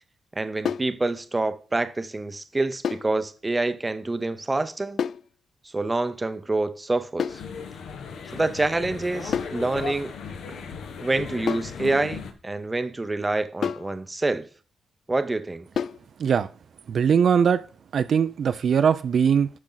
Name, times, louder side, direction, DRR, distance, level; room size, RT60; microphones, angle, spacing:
voice 1, 0.3-5.0 5.7-7.4 8.3-10.1 10.5-10.6 11.0-14.5 15.1-15.7, right 2 dB, 15° right, 0.7 m, -27 dB
sound 1, 0.6-1.0 2.8-3.1 5.0-5.3 7.2-7.5 9.3-9.6 11.5-11.8 13.6-13.9 15.8-16.1, left 7 dB, 55° left, 0.3 m, -29 dB
sound 2, 7.3-12.3, left 6 dB, 85° left, 1.4 m, -37 dB
voice 2, 16.2-16.5 16.9-17.6 17.9-19.5, right 7 dB, 50° right, 0.4 m, -20 dB
10.5 x 6.1 x 3.9 m
wide cardioid pair, 155°, 0 cm